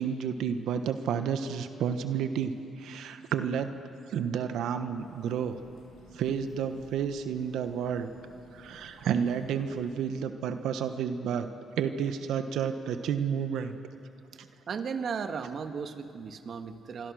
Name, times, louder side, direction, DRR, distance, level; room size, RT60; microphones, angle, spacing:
voice 1, 0.0-3.7 4.1-5.6 6.1-8.1 8.5-11.5 11.8-13.8 14.4-14.5, right 7 dB, 80° right, 9 dB, 1.2 m, -31 dB
sound 1, 4.9-9.9, left 3 dB, 85° left, 7.9 m, -57 dB
voice 2, 14.7-17.1, right 6 dB, 55° right, 8 dB, 1.5 m, -35 dB
26.0 x 24.5 x 6.4 m, 2.6 s
cardioid pair, 90°, 0 cm